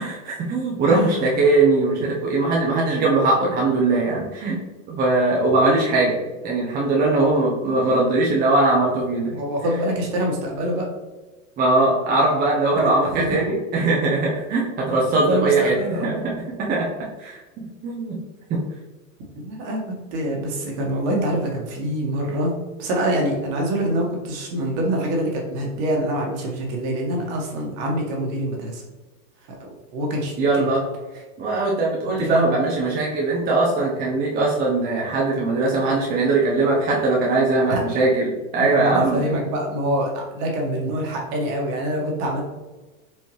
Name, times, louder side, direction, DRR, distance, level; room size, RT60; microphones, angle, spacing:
voice 1, 0.0-4.6 4.9-9.4 11.6-16.3 16.6-16.9 17.2-17.4 17.8-18.2 18.5-18.6 30.4-30.9 31.4-39.2, right 2 dB, 20° right, -4 dB, 0.7 m, -20 dB
voice 2, 0.8-1.2 9.3-10.9 12.7-13.4 15.3-16.2 19.3-19.8 20.1-28.8 29.6-30.7 32.2-32.5 37.7-37.8 38.6-42.4, right 1 dB, 50° right, -1 dB, 1.5 m, -25 dB
4.4 x 2.8 x 3.2 m, 1.2 s
hypercardioid pair, 120°, 43 cm